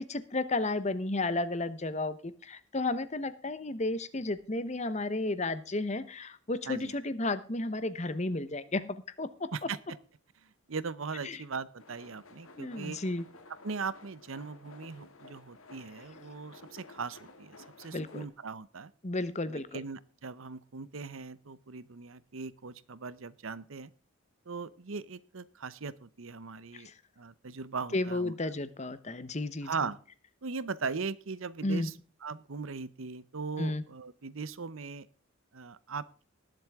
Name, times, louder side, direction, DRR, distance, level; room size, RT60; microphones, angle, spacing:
voice 1, 0.0-9.5 11.2-11.4 12.6-13.3 17.9-18.2 19.0-19.8 26.7-26.9 27.9-29.7 31.6-31.9 33.6-33.8, left 2 dB, 35° left, 14 dB, 0.9 m, -33 dB
voice 2, 10.4-13.0 13.6-18.9 19.5-23.9 24.5-26.9 27.2-28.3 29.6-30.0 30.4-31.9 32.2-35.1 35.5-36.1, right 4 dB, 70° right, 18 dB, 0.8 m, -39 dB
sound 1, 11.8-18.3, left 3 dB, 80° left, 2.0 m, -54 dB
19.5 x 7.7 x 3.6 m, 0.39 s
head